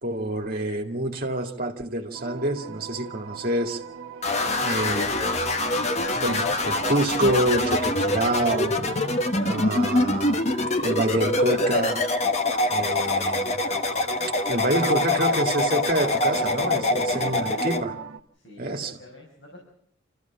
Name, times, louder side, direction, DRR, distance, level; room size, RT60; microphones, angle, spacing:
voice 1, 0.0-3.8 4.6-5.1 6.2-8.8 9.4-10.4 10.8-12.0 12.7-13.7 14.2-17.9 18.6-18.9, right 1 dB, 45° right, 2.3 m, -27 dB
sound 1, 2.1-18.2, right 7 dB, 90° right, 1.2 m, -40 dB
sound 2, 4.2-17.8, left 2 dB, 35° left, 1.2 m, -25 dB
voice 2, 12.7-13.2 16.9-17.6 18.3-19.6, left 2 dB, 65° left, 5.6 m, -46 dB
27.5 x 14.5 x 7.3 m
head